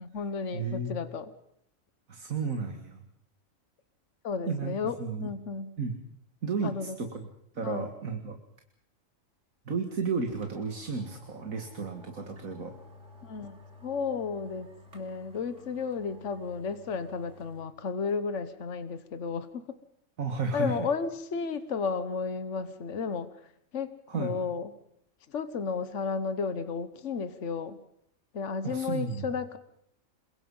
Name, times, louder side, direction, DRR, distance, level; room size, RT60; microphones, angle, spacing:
voice 1, 0.0-1.3 4.2-5.7 6.6-7.0 7.6-7.9 13.2-13.6 13.8-14.7 14.9-19.6 20.5-23.3 23.7-23.9 24.2-24.7 25.3-27.8 28.3-29.6, left 5 dB, 60° left, 11 dB, 1.5 m, -33 dB
voice 2, 0.5-0.9 2.1-3.0 4.5-5.3 5.8-6.0 6.4-7.3 7.5-8.4 9.7-12.7 20.2-20.8 24.1-24.4 28.6-29.3, right 4 dB, 85° right, 5 dB, 2.4 m, -33 dB
sound 1, 9.9-10.0 10.4-17.7 18.1-18.2, left 3 dB, 60° right, 3.6 m, -52 dB
27.5 x 23.5 x 5.6 m, 0.69 s
omnidirectional pair, 1.4 m